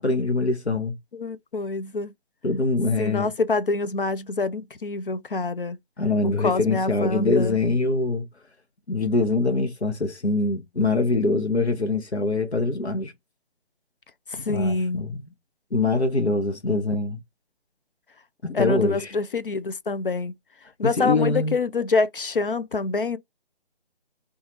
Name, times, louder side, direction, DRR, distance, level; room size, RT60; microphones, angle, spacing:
voice 1, 0.0-1.0 2.4-3.3 6.0-8.3 8.9-13.1 14.5-15.2 15.7-17.2 18.4-19.1 20.8-21.6, left 3 dB, 90° left, 0.8 m, -23 dB
voice 2, 1.1-2.1 3.0-5.8 6.2-7.5 14.3-15.0 18.5-20.3 20.8-23.2, left 3 dB, 55° left, 0.4 m, -26 dB
2.6 x 2.4 x 4.1 m
figure-of-eight pair, 150°, 32 cm